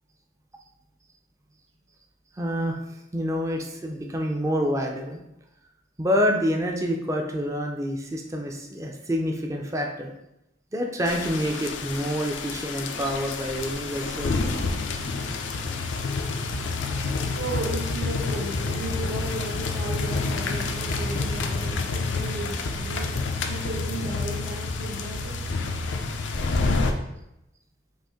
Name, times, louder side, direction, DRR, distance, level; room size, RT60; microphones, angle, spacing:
voice 1, 2.3-5.2 6.0-10.1 10.7-14.4, equal, 15° right, 2 dB, 0.4 m, -27 dB
sound 1, 11.1-26.9, left 3 dB, 90° left, 0.5 m, -28 dB
voice 2, 17.3-25.4, right 2 dB, 70° right, -3 dB, 0.9 m, -35 dB
5.3 x 2.5 x 3.6 m, 0.86 s
head